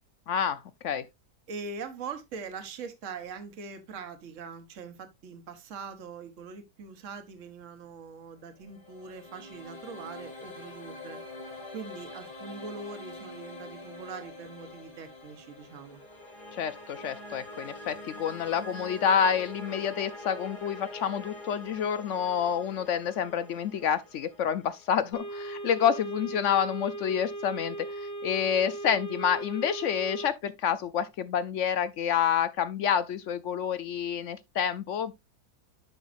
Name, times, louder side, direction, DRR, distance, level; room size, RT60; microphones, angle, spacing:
voice 1, 0.3-1.0 16.5-35.1, left 8 dB, 65° left, 0.8 m, -28 dB
voice 2, 1.5-16.0, right 5 dB, 55° right, 1.4 m, -42 dB
sound 1, 8.5-25.6, left 1 dB, 85° left, 2.8 m, -45 dB
sound 2, 25.1-30.3, right 2 dB, 20° left, 0.5 m, -38 dB
10.0 x 5.6 x 2.5 m
omnidirectional pair, 1.7 m